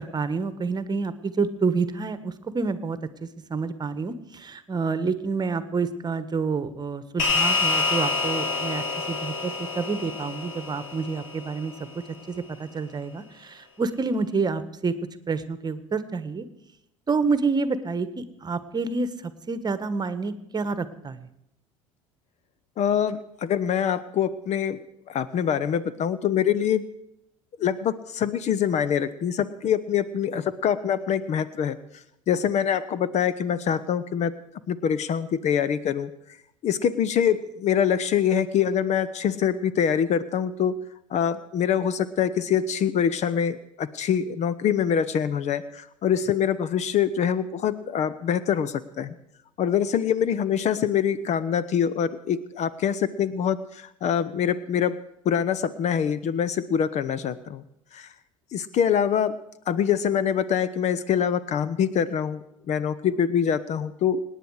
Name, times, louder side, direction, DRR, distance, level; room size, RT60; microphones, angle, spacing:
voice 1, 0.0-11.7 12.3-14.9 15.3-16.4 17.1-21.2, right 4 dB, 25° right, 13 dB, 1.4 m, -28 dB
sound 1, 7.2-11.8, left 4 dB, 80° left, 4.0 m, -27 dB
voice 2, 22.8-24.8 25.1-26.8 27.6-31.8 32.3-34.3 34.7-36.1 36.6-40.7 41.1-49.2 49.6-55.0 55.2-57.6 57.9-58.1 58.5-59.4 59.7-64.2, left 8 dB, 45° left, 17 dB, 0.9 m, -24 dB
26.0 x 10.0 x 4.9 m, 0.80 s
hypercardioid pair, 70°, 16 cm